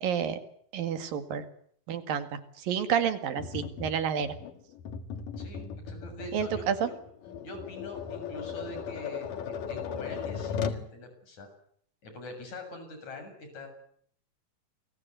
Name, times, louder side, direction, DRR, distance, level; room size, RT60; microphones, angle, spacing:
voice 1, 0.0-0.4 0.7-1.5 1.9-4.4 6.3-6.9, right 8 dB, 85° right, 10 dB, 3.8 m, -30 dB
Tap, 3.4-10.9, left 6 dB, 75° left, 3.5 m, -37 dB
voice 2, 5.4-6.7 7.4-11.5 12.0-13.7, left 1 dB, 55° left, 6 dB, 8.6 m, -44 dB
29.0 x 22.0 x 8.1 m, 0.65 s
omnidirectional pair, 3.9 m